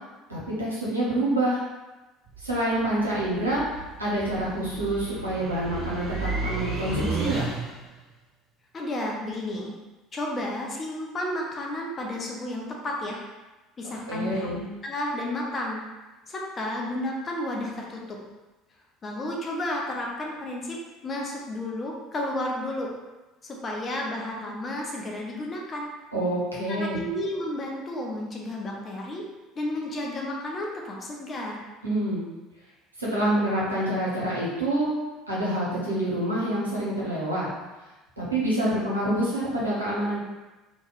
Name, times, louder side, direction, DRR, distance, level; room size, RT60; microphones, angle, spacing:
voice 1, 0.3-1.6 2.4-3.6 4.0-7.4 13.8-14.6 26.1-27.0 31.8-32.2 33.0-34.9 35.3-37.5 38.2-40.2, right 1 dB, 90° right, -7 dB, 0.7 m, -27 dB
sound 1, 2.3-7.9, right 3 dB, 45° right, 1.1 m, -33 dB
voice 2, 8.7-9.7 10.1-13.2 13.8-15.8 16.3-18.2 19.0-20.8 21.0-22.9 23.4-25.9 26.7-29.2 29.6-31.6, left 1 dB, 30° left, -1 dB, 0.7 m, -32 dB
3.1 x 2.2 x 3.1 m, 1.1 s
figure-of-eight pair, 65°, 0 cm